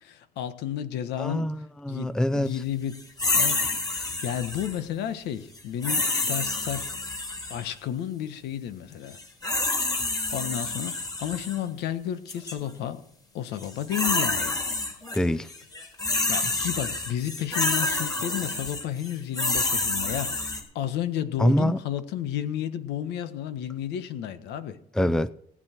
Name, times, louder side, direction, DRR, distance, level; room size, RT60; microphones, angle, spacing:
voice 1, 0.0-1.5 1.9-3.0 3.3-6.9 7.5-9.2 9.5-13.0 13.3-14.6 16.3-24.8, left 10 dB, 85° left, 1.5 m, -32 dB
voice 2, 1.2-2.5 15.1-15.5 21.4-21.8 24.9-25.3, left 1 dB, 5° left, 0.5 m, -24 dB
sound 1, 3.2-4.8 5.8-7.7 9.1-11.6 12.3-12.5 13.6-15.2 15.5-20.6, left 2 dB, 20° left, 3.8 m, -28 dB
19.0 x 9.0 x 4.6 m
cardioid pair, 110°, 17 cm